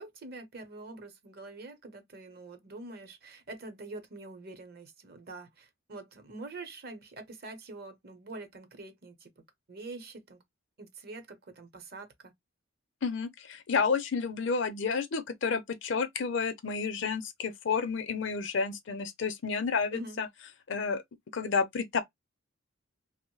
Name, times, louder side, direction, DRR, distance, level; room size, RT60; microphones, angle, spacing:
voice 1, 0.0-9.3 9.7-10.4 10.8-12.3 19.9-20.2, right 2 dB, 50° right, 0.7 m, -45 dB
voice 2, 13.0-20.3 20.7-21.0 21.3-22.0, left 5 dB, 65° left, 0.5 m, -30 dB
2.9 x 2.0 x 3.0 m
head